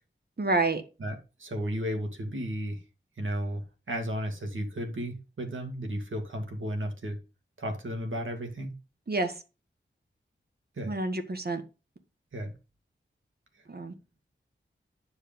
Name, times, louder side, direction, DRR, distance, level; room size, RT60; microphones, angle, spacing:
voice 1, 0.4-0.8 9.1-9.4 10.8-11.6 13.7-13.9, right 2 dB, 50° right, 1.5 m, -28 dB
voice 2, 1.0-2.8 3.2-7.2 7.6-8.8 10.8-10.9 12.3-12.5, equal, 75° right, 2.3 m, -34 dB
9.8 x 5.1 x 5.3 m
wide cardioid pair, 80°, 20 cm